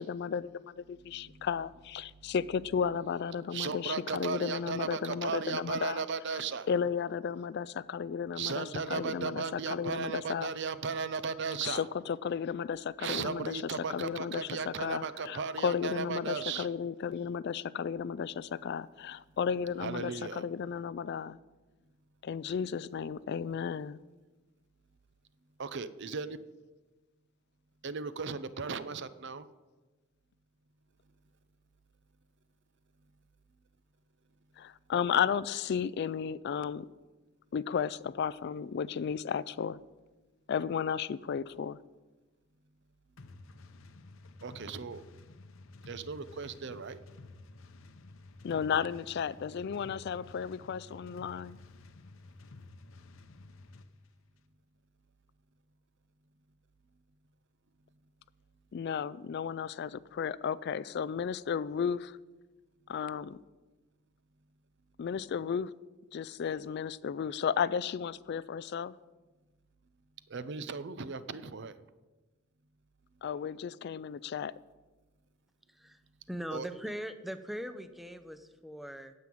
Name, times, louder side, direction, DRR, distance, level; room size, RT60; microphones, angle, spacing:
voice 1, 0.0-6.0 6.7-10.5 11.6-21.4 22.2-24.0 34.6-36.9 37.5-39.8 40.5-41.8 48.4-51.6 58.7-62.2 62.9-63.4 65.0-65.7 66.1-68.9 73.2-74.5, left 7 dB, 50° left, 0.3 m, -34 dB
voice 2, 1.1-1.8 2.2-2.9 3.5-6.7 8.3-11.9 13.0-16.7 19.8-20.4 25.6-26.4 27.8-29.5 44.4-45.0 45.9-47.0 70.3-71.8 76.5-76.7, right 5 dB, 55° right, 0.6 m, -36 dB
sound 1, 43.2-53.9, left 2 dB, 65° left, 0.7 m, -52 dB
voice 3, 75.7-76.0 76.3-79.1, equal, ahead, 0.6 m, -40 dB
9.5 x 7.6 x 8.5 m
head